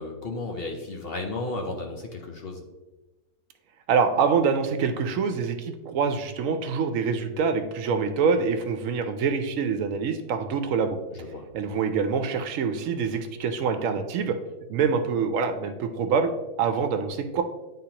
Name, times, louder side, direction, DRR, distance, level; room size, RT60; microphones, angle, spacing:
voice 1, 0.0-2.6 11.1-11.4, left 2 dB, 50° left, 2 dB, 0.8 m, -34 dB
voice 2, 3.9-11.0 11.5-14.4 14.7-16.3 16.6-17.4, right 5 dB, 70° right, 8 dB, 0.9 m, -25 dB
9.8 x 3.7 x 2.9 m, 1.1 s
omnidirectional pair, 1.5 m